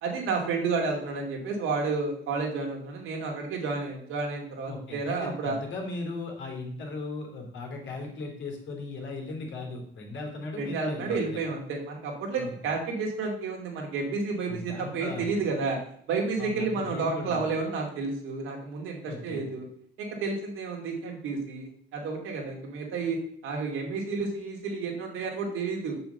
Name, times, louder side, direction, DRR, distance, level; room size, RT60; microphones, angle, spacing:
voice 1, 0.0-5.6 10.6-15.8 16.1-19.7 20.0-23.2 23.4-26.0, right 4 dB, 85° right, 0 dB, 2.7 m, -31 dB
voice 2, 4.7-11.4 12.4-12.7 14.5-15.3 16.4-17.4 19.0-19.4, left 3 dB, 65° left, 1 dB, 3.1 m, -37 dB
6.9 x 6.2 x 6.9 m, 0.63 s
cardioid pair, 105°, 21 cm